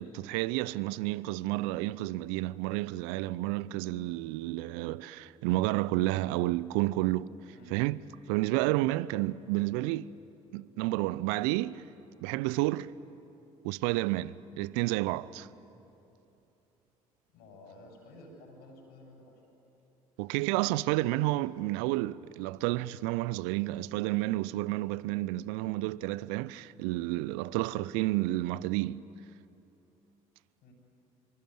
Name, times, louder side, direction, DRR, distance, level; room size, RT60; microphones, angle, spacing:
voice 1, 0.0-7.3 7.7-8.0 8.3-10.1 10.5-11.8 12.2-12.9 13.6-15.5 20.2-29.0, right 18 dB, 75° right, 0.5 m, -30 dB
voice 2, 17.3-19.4 30.6-30.7, left 1 dB, 70° left, 7.8 m, -53 dB
25.0 x 24.0 x 9.4 m
hypercardioid pair, 55°, 17 cm